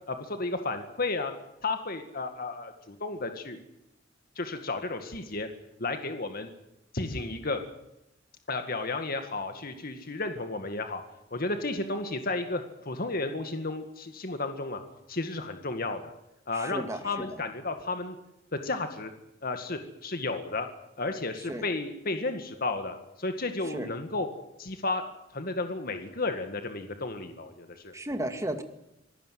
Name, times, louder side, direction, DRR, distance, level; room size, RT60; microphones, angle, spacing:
voice 1, 0.1-1.3 1.6-3.6 4.4-5.5 5.8-6.5 6.9-7.6 8.5-11.0 11.3-14.8 15.1-16.1 16.5-18.2 18.6-19.1 19.4-20.7 21.0-24.3 24.6-25.0 25.3-27.9, left 3 dB, 50° left, 6 dB, 2.1 m, -33 dB
voice 2, 16.5-17.2 21.5-21.6 23.7-23.9 27.9-28.6, right 1 dB, 15° right, 6 dB, 2.2 m, -34 dB
26.0 x 18.5 x 7.8 m, 0.85 s
head